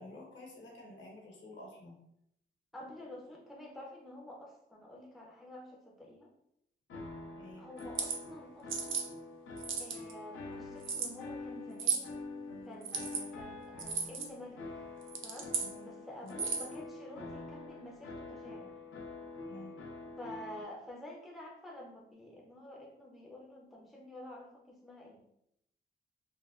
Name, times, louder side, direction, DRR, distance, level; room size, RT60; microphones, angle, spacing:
voice 1, 0.0-2.0 7.3-7.7 15.6-15.9 16.2-16.4 19.5-19.8, left 1 dB, 70° left, -1 dB, 0.9 m, -50 dB
voice 2, 2.7-6.3 7.6-9.0 9.8-12.1 12.7-14.8 15.2-15.5 15.8-18.7 20.2-25.2, left 1 dB, ahead, -2 dB, 0.4 m, -49 dB
sound 1, 6.9-20.6, left 3 dB, 85° left, 0.5 m, -46 dB
sound 2, 7.8-8.2 8.7-9.1 9.6-10.1 10.8-11.1 11.8-12.1 12.8-13.2 13.8-14.3 15.0-15.7 16.3-16.7, right 6 dB, 80° right, 0.4 m, -34 dB
3.3 x 2.1 x 2.3 m, 0.76 s
wide cardioid pair, 160°, 20 cm